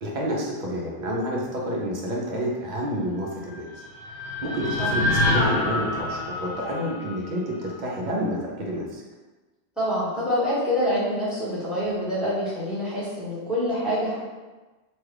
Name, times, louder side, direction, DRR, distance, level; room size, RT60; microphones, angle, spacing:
voice 1, 0.0-3.7 4.2-9.0, equal, 50° right, -3 dB, 0.7 m, -29 dB
sound 1, 3.5-7.7, left 2 dB, 90° left, 0.9 m, -27 dB
voice 2, 9.8-14.2, equal, ahead, -9 dB, 0.9 m, -26 dB
3.0 x 2.3 x 3.2 m, 1.2 s
omnidirectional pair, 1.1 m